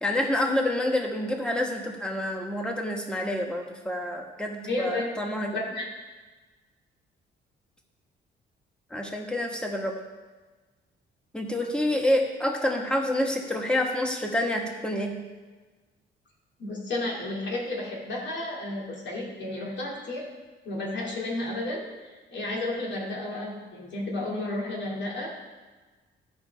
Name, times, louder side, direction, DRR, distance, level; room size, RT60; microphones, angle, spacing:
voice 1, 0.0-5.5 8.9-10.0 11.3-15.1, left 1 dB, 5° left, 1 dB, 1.5 m, -28 dB
voice 2, 4.6-5.1 5.5-5.9 16.6-20.3 20.6-21.8 22.3-25.3, left 2 dB, 65° left, -3 dB, 2.5 m, -32 dB
13.5 x 5.2 x 3.5 m, 1.3 s
cardioid pair, 90°, 20 cm